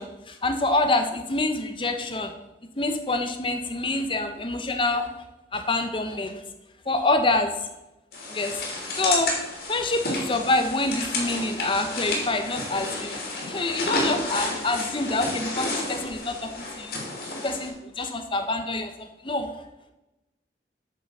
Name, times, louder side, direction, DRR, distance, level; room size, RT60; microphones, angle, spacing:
voice 1, 0.0-2.3 2.8-5.1 5.5-6.4 6.9-7.7 8.3-8.6 9.0-9.3 9.7-13.2 13.5-17.0 17.3-19.5, left 2 dB, 30° left, 6 dB, 0.9 m, -26 dB
sound 1, 8.1-17.7, left 2 dB, 55° left, 3.1 m, -31 dB
8.9 x 6.2 x 6.5 m, 0.99 s
head